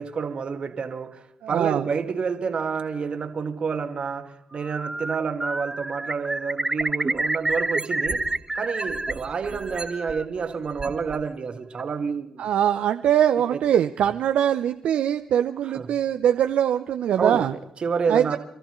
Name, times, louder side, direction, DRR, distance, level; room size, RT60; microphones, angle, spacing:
voice 1, 0.0-8.3 8.5-12.4 13.5-13.6 15.6-15.9 17.2-18.4, right 5 dB, 55° right, 1.6 m, -29 dB
voice 2, 1.4-1.8 12.4-17.5 18.1-18.4, right 10 dB, 70° right, 0.5 m, -22 dB
Bird, 4.6-5.1 5.4-9.1 9.4-10.2, right 2 dB, 15° right, 0.5 m, -28 dB
sound 1, 6.8-8.4 8.8-11.2 11.8-11.9, right 3 dB, 35° right, 1.7 m, -35 dB
27.5 x 13.5 x 3.1 m
supercardioid pair, 50°, 2 cm